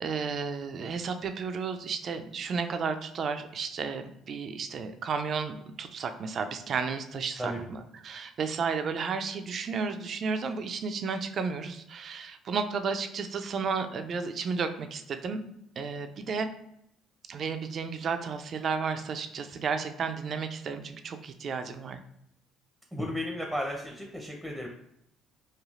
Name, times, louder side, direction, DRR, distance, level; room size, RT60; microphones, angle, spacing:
voice 1, 0.0-15.4 15.8-16.5 17.3-22.0, right 5 dB, 50° right, 8 dB, 0.3 m, -33 dB
voice 2, 22.9-24.7, equal, ahead, 0 dB, 0.6 m, -34 dB
3.1 x 2.3 x 2.4 m, 0.76 s
hypercardioid pair, 60°, 0 cm